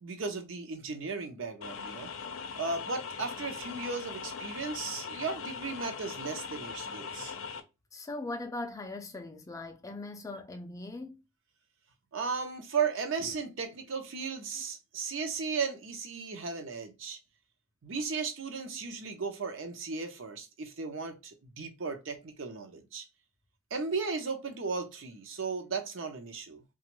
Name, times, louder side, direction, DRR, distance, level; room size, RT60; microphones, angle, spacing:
voice 1, 0.0-2.1 2.6-7.4 12.1-17.2 17.8-23.1 23.7-26.6, right 5 dB, 70° right, 0.6 m, -35 dB
sound 1, 1.6-7.6, left 6 dB, 85° left, 0.5 m, -40 dB
voice 2, 7.9-11.2, left 2 dB, 15° left, 0.3 m, -40 dB
2.9 x 2.3 x 2.9 m
head